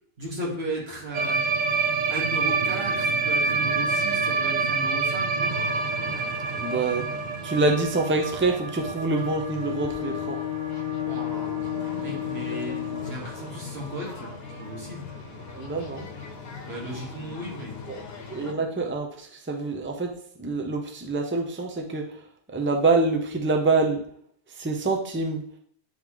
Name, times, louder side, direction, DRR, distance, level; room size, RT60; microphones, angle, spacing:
voice 1, 0.2-1.5 2.1-5.6 11.0-15.1 16.7-17.8, right 1 dB, 80° right, -2 dB, 2.0 m, -36 dB
sound 1, 1.1-13.0 13.3-13.5 13.8-14.0 14.3-14.4 14.7-14.8 15.9-16.0, right 4 dB, 55° right, 0.7 m, -28 dB
sound 2, 5.5-18.5, left 4 dB, 75° left, 1.1 m, -41 dB
voice 2, 6.6-7.0 7.4-10.4 15.6-16.1 18.3-20.1 20.4-22.0 22.5-24.0 24.6-25.4, right 3 dB, 15° right, 2 dB, 0.6 m, -25 dB
Bowed string instrument, 9.1-13.3, left 13 dB, 55° left, 0.9 m, -32 dB
8.7 x 3.8 x 3.0 m, 0.64 s
omnidirectional pair, 1.0 m